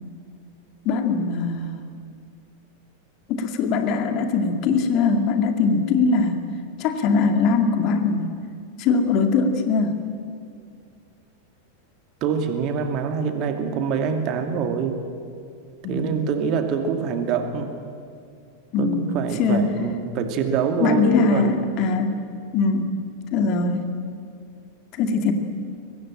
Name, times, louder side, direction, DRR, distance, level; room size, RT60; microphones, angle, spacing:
voice 1, 0.9-1.9 3.3-6.4 6.8-8.3 8.8-10.0 15.8-16.3 18.7-19.7 20.8-22.1 22.5-22.9 23.3-23.9 25.0-25.3, left 4 dB, 40° left, 6 dB, 2.1 m, -21 dB
voice 2, 12.2-15.0 15.9-17.8 18.8-21.6, right 6 dB, 40° right, 6 dB, 2.4 m, -25 dB
23.5 x 20.0 x 8.9 m, 2.3 s
figure-of-eight pair, 90°, 0 cm